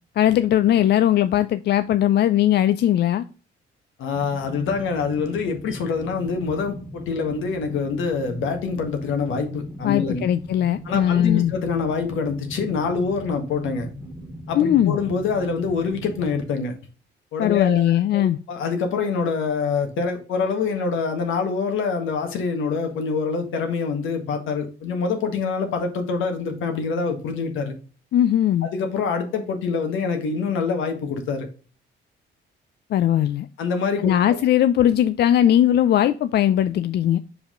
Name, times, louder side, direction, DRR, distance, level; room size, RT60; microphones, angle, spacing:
voice 1, 0.2-3.2 9.8-11.5 14.5-15.0 17.4-18.4 28.1-28.7 32.9-33.5 34.0-37.2, left 11 dB, 55° left, 0.4 m, -19 dB
voice 2, 4.0-10.2 10.8-13.9 14.5-16.8 17.3-27.7 28.6-31.5 33.6-34.1, left 5 dB, 80° left, 1.5 m, -25 dB
sound 1, 4.1-16.5, equal, 10° right, 1.5 m, -38 dB
5.4 x 4.8 x 3.7 m
cardioid pair, 90°, 20 cm